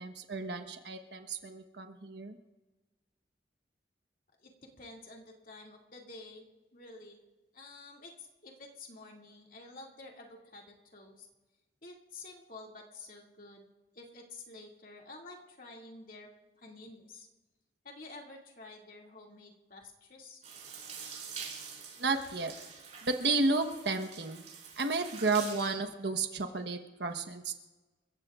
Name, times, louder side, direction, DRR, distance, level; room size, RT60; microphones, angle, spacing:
voice 1, 0.0-2.4 22.0-22.5 23.0-24.4 24.8-27.5, right 3 dB, 75° right, 6 dB, 1.2 m, -32 dB
voice 2, 4.4-7.2 7.5-11.3 11.8-13.7 13.9-16.3 16.6-17.3 17.8-20.4, left 2 dB, 50° left, -1 dB, 2.4 m, -50 dB
sound 1, 20.4-25.7, right 6 dB, 40° right, 5.0 m, -46 dB
28.5 x 15.0 x 2.5 m, 1.2 s
head